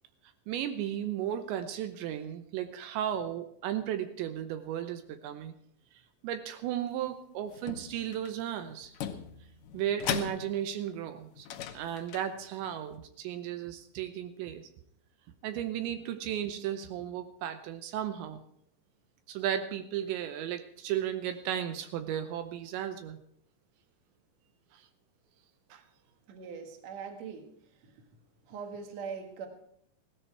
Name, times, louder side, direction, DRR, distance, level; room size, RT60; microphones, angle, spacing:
voice 1, 0.5-5.5 6.2-8.9 9.7-11.5 11.7-14.7 15.4-18.4 19.3-23.2 24.7-24.8 25.7-25.8, right 10 dB, 80° right, 8 dB, 3.0 m, -35 dB
sound 1, 7.5-8.3 8.8-10.9 11.4-12.8, left 9 dB, 85° left, 1.9 m, -39 dB
voice 2, 26.3-28.0 28.4-29.5, right 6 dB, 50° right, 4 dB, 2.3 m, -42 dB
17.0 x 13.0 x 4.6 m, 0.67 s
omnidirectional pair, 5.2 m